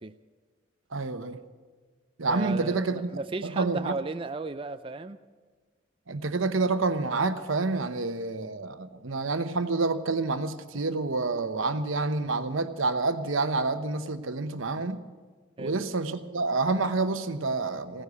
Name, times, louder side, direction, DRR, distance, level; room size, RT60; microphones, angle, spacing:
voice 1, 0.9-1.4 2.2-3.1 3.4-3.9 6.1-15.0 15.6-18.0, right 3 dB, 85° right, 10 dB, 1.0 m, -28 dB
voice 2, 2.3-5.2 15.6-15.8, right 3 dB, 25° right, 10 dB, 0.4 m, -35 dB
16.0 x 10.0 x 8.2 m, 1.5 s
head